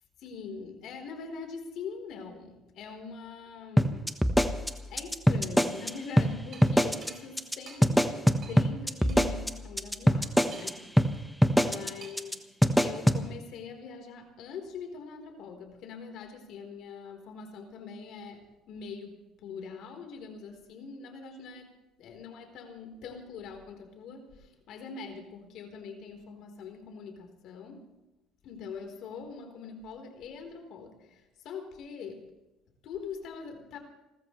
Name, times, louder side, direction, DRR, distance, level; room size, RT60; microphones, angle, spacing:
voice 1, 0.2-4.1 4.9-12.3 12.8-21.7 22.0-27.9 28.4-32.3 32.8-33.8, left 5 dB, 65° left, 4 dB, 4.0 m, -43 dB
sound 1, 3.8-5.9 6.2-6.3 6.6-7.1 7.4-7.6 7.8-10.7 11.0-11.1 11.4-11.9 12.2-12.3 12.6-13.2, equal, ahead, 1.2 m, -23 dB
sound 2, 6.5-6.7 7.0-7.2 7.7-7.8 8.4-8.6 9.1-9.2 10.5-10.9 12.0-12.3, right 6 dB, 45° right, 4.4 m, -48 dB
29.0 x 14.0 x 3.3 m, 1.0 s
cardioid pair, 120°, 0 cm